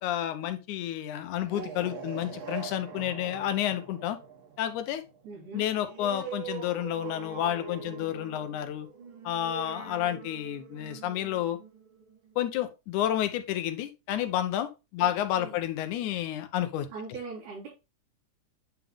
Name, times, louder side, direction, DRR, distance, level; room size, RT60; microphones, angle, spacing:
voice 1, 0.0-4.2 4.6-5.0 5.5-8.9 9.2-11.6 12.4-16.9, left 11 dB, 90° left, 9 dB, 2.3 m, -30 dB
sound 1, 1.2-12.5, right 7 dB, 50° right, 1.6 m, -43 dB
voice 2, 5.2-5.6 15.0-15.1 15.4-15.7 16.9-17.7, right 4 dB, 90° right, -6 dB, 4.0 m, -41 dB
9.0 x 3.5 x 3.5 m, 0.26 s
omnidirectional pair, 3.4 m